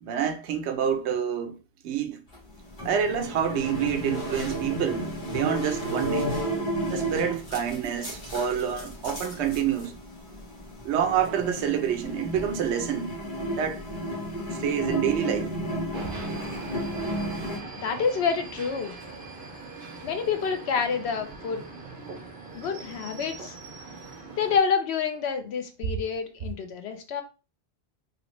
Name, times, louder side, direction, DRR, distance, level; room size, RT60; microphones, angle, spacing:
voice 1, 0.0-1.6 1.8-2.2 2.8-6.3 6.9-9.9 10.8-13.1 13.6-13.9 14.6-15.6, right 8 dB, 85° right, 0.9 m, -27 dB
sound 1, 2.3-17.6, equal, 50° left, 1.4 m, -33 dB
sound 2, 15.9-24.6, right 3 dB, 60° right, 0.8 m, -41 dB
voice 2, 17.8-18.9 20.0-21.6 22.5-23.6 24.4-27.2, left 6 dB, 75° left, 0.9 m, -28 dB
3.2 x 2.5 x 2.9 m
omnidirectional pair, 1.1 m